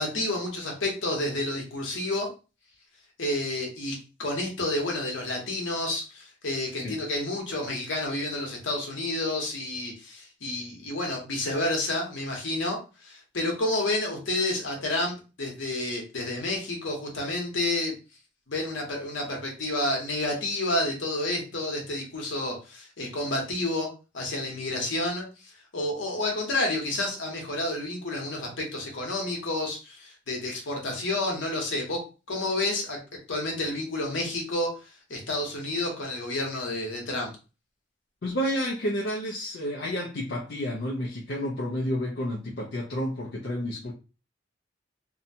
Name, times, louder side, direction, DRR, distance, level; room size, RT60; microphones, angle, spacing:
voice 1, 0.0-2.3 3.2-18.0 18.5-23.9 24.1-32.0 32.3-33.0 33.3-37.3, left 2 dB, 70° left, 0 dB, 1.0 m, -30 dB
voice 2, 38.2-43.9, equal, 55° left, -3 dB, 0.5 m, -30 dB
2.7 x 2.2 x 2.6 m, 0.32 s
head